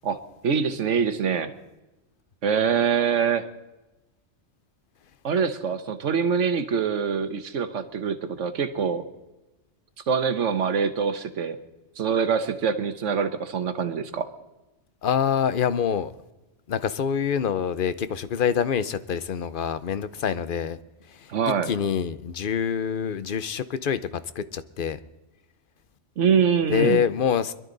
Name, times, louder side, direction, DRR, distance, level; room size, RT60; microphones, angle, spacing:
voice 1, 0.4-1.5 2.4-3.5 5.2-9.1 10.1-11.6 12.0-14.3 21.3-21.7 26.2-27.0, right 6 dB, 85° right, 1.4 m, -24 dB
voice 2, 15.0-16.1 16.7-20.8 21.1-21.3 21.7-24.0 24.4-25.0 26.7-27.5, left 7 dB, 50° left, 0.8 m, -25 dB
22.5 x 12.0 x 3.9 m
omnidirectional pair, 1.2 m